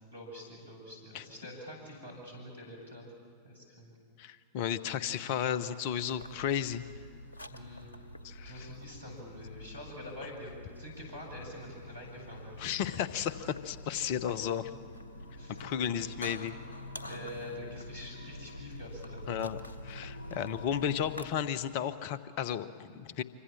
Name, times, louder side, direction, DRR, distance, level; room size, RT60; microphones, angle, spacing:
voice 1, 0.1-3.0 3.4-3.9 7.5-7.9 8.4-12.8 15.4-15.6 17.1-19.3, left 1 dB, 85° right, -1 dB, 7.9 m, -46 dB
voice 2, 4.2-6.8 8.2-8.5 12.6-14.7 15.6-16.6 19.3-19.6 19.8-23.2, left 9 dB, 45° left, 15 dB, 1.0 m, -33 dB
sound 1, 6.0-21.3, left 1 dB, 75° left, 1.4 m, -46 dB
26.5 x 24.5 x 7.4 m, 2.2 s
figure-of-eight pair, 90°, 0 cm